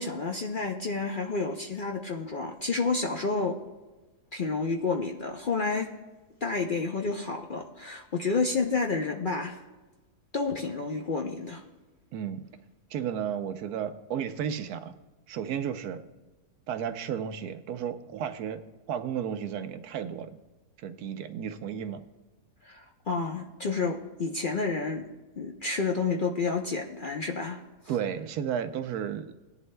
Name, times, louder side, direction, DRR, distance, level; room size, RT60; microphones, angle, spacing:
voice 1, 0.0-3.6 4.3-5.9 6.4-9.6 10.3-11.6 22.6-25.1 25.4-27.6, left 4 dB, 50° left, 2 dB, 0.6 m, -30 dB
voice 2, 12.1-12.4 12.9-14.9 15.3-16.0 16.7-18.6 18.9-20.3 20.8-22.0 27.9-29.4, right 8 dB, 80° right, 10 dB, 1.2 m, -33 dB
18.5 x 11.0 x 2.2 m, 1.2 s
omnidirectional pair, 1.6 m